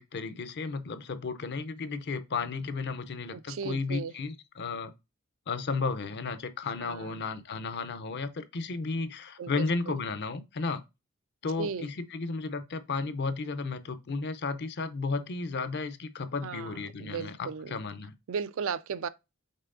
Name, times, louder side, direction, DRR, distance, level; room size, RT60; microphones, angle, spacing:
voice 1, 0.0-4.9 5.5-10.8 11.4-18.1, left 4 dB, 50° left, 0.5 m, -33 dB
voice 2, 3.3-4.1 6.8-7.2 9.4-9.9 11.6-11.9 16.4-17.7 18.3-19.1, right 6 dB, 65° right, 0.4 m, -36 dB
5.5 x 3.5 x 2.5 m
head